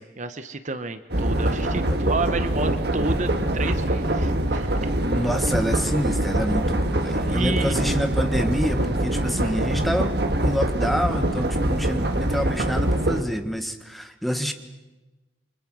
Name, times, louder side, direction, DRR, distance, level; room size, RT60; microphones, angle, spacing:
voice 1, 0.0-4.7 7.2-7.8, right 3 dB, 40° right, 10 dB, 1.0 m, -30 dB
sound 1, 1.1-13.2, right 1 dB, 55° right, 1.7 m, -24 dB
voice 2, 5.0-10.1 10.4-14.5, equal, ahead, 6 dB, 1.5 m, -27 dB
28.5 x 25.0 x 6.2 m, 1.1 s
head